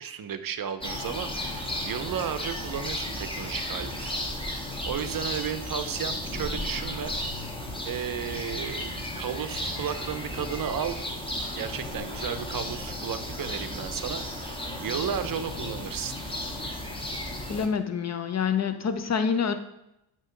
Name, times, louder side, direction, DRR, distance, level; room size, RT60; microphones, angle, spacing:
voice 1, 0.0-4.2 4.5-7.1 7.8-11.1 11.5-16.1, right 8 dB, 45° right, 10 dB, 0.7 m, -34 dB
sound 1, 0.8-17.7, left 1 dB, 10° left, 1.3 m, -34 dB
voice 2, 17.5-19.5, left 6 dB, 35° left, 9 dB, 0.8 m, -27 dB
8.0 x 3.1 x 4.5 m, 0.86 s
supercardioid pair, 60°, 49 cm